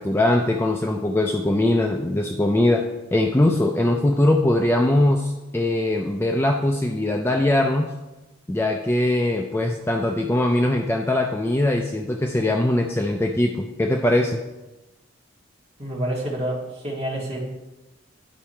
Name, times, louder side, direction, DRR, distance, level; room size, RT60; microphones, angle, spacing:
voice 1, 0.0-2.8 3.1-7.9 8.5-14.4, left 1 dB, 10° left, 2 dB, 0.3 m, -21 dB
voice 2, 15.8-17.4, right 1 dB, 30° right, -4 dB, 2.0 m, -28 dB
10.0 x 4.7 x 4.4 m, 1.1 s
head